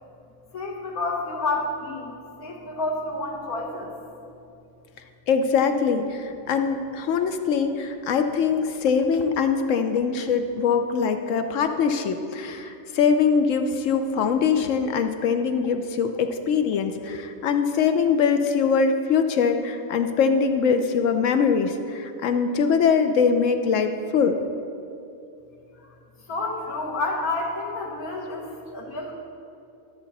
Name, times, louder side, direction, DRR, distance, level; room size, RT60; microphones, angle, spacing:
voice 1, 0.5-3.9 25.7-25.9 26.3-29.1, left 2 dB, 85° left, -2 dB, 1.9 m, -29 dB
voice 2, 5.3-24.4, left 6 dB, 70° left, 7 dB, 0.9 m, -22 dB
13.0 x 6.8 x 4.1 m, 2.6 s
omnidirectional pair, 1.5 m